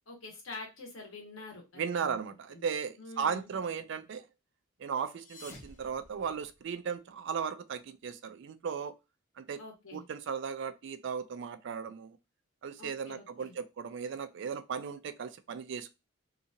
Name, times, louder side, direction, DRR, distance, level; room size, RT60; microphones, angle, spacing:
voice 1, 0.1-2.2 2.5-2.7 3.0-3.5 9.6-10.0 12.8-13.5, left 3 dB, 70° left, 1.2 m, -46 dB
voice 2, 1.8-4.3 4.8-8.9 9.4-9.6 9.9-12.2 12.6-16.0, right 6 dB, 55° right, 0.3 m, -36 dB
sound 1, 5.0-6.9, left 2 dB, 35° left, 0.7 m, -53 dB
2.8 x 2.4 x 2.6 m
head